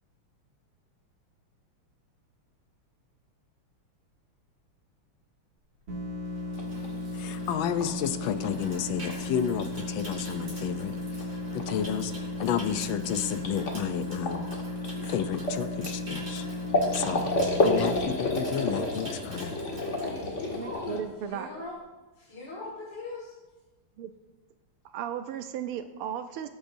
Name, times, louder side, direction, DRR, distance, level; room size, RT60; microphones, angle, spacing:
Water tap faucet / Sink (filling or washing), 5.7-20.8 21.1-21.4, right 1 dB, 35° right, 4.0 m, -46 dB
sound 1, 5.9-18.0, left 1 dB, 60° right, 2.9 m, -35 dB
sound 2, 6.5-21.0, left 2 dB, 35° left, 1.6 m, -33 dB
voice 1, 7.1-11.3 11.5-12.1 12.4-14.5 15.1-16.5 16.9-17.3 17.6-19.6, left 9 dB, 75° left, 10 dB, 1.3 m, -31 dB
voice 2, 20.0-21.0 21.3-21.8 22.3-23.3, left 2 dB, 55° left, -5 dB, 2.3 m, -40 dB
voice 3, 20.5-21.5 24.0-24.1 24.9-26.5, right 9 dB, 85° right, 8 dB, 1.6 m, -35 dB
18.5 x 9.0 x 2.6 m, 1.1 s
omnidirectional pair, 2.4 m